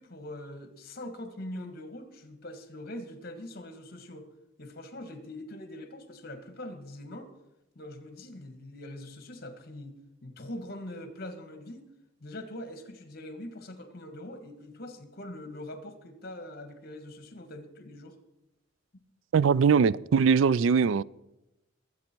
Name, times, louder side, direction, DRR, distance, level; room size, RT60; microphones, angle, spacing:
voice 1, 0.0-4.3 4.6-7.3 7.8-11.8 12.2-18.2, left 1 dB, 50° left, 1.7 m, -43 dB
voice 2, 19.3-21.0, right 6 dB, 70° right, 0.4 m, -21 dB
21.5 x 8.5 x 4.5 m
head